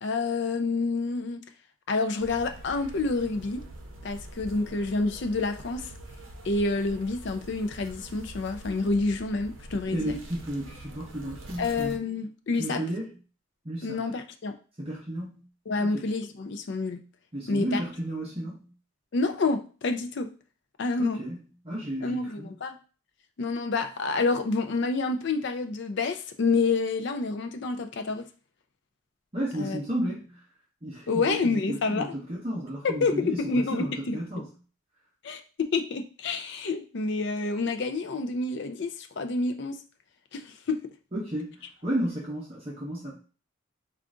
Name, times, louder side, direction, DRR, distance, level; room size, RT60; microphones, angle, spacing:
voice 1, 0.0-1.4 1.9-3.6 4.0-5.9 6.4-10.2 11.6-12.8 13.8-14.6 15.7-17.0 17.5-17.8 19.1-20.3 20.8-21.2 22.0-22.8 23.4-28.3 29.6-29.8 31.1-32.1 32.8-34.4 35.2-39.8 40.3-40.8, left 3 dB, 55° left, 7 dB, 0.4 m, -28 dB
sound 1, 2.2-12.0, right 1 dB, 65° right, 0.7 m, -45 dB
voice 2, 9.9-11.9 12.6-13.1 13.6-14.0 14.8-15.4 15.8-16.1 17.3-18.7 21.0-22.5 29.3-30.3 30.8-34.5 41.1-43.1, right 1 dB, 25° right, -4 dB, 0.7 m, -33 dB
3.7 x 2.4 x 3.7 m, 0.37 s
head